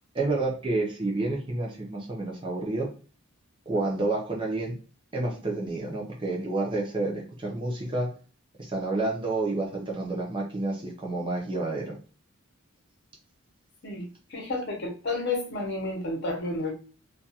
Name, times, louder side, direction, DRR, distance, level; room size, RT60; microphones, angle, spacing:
voice 1, 0.1-2.9 3.7-4.8 5.1-8.1 8.7-12.0, right 2 dB, 20° right, -1 dB, 0.5 m, -29 dB
voice 2, 14.3-16.7, left 2 dB, 50° left, 0 dB, 0.7 m, -31 dB
2.3 x 2.3 x 2.7 m, 0.36 s
head